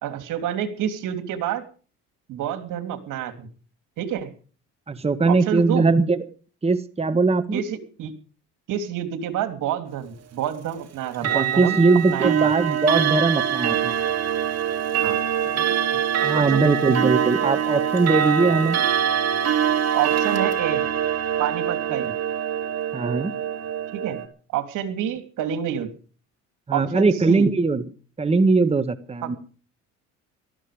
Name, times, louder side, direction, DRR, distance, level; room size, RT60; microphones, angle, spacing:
voice 1, 0.0-1.6 2.3-3.5 4.0-4.3 5.2-5.9 7.5-8.1 8.7-11.8 12.1-12.3 15.0-15.2 16.2-16.6 19.9-20.8 21.4-22.1 23.9-24.2 24.5-25.9 26.7-27.5 29.2-29.3, right 10 dB, 70° right, 9 dB, 3.1 m, -28 dB
voice 2, 4.9-6.2 6.6-7.6 11.2-14.0 16.2-18.8 22.9-23.3 26.7-27.8 28.2-29.4, right 3 dB, 20° right, 9 dB, 1.5 m, -20 dB
Clock, 11.1-24.3, right 9 dB, 50° right, 3.1 m, -24 dB
18.5 x 13.5 x 5.1 m, 0.40 s
supercardioid pair, 85°, 32 cm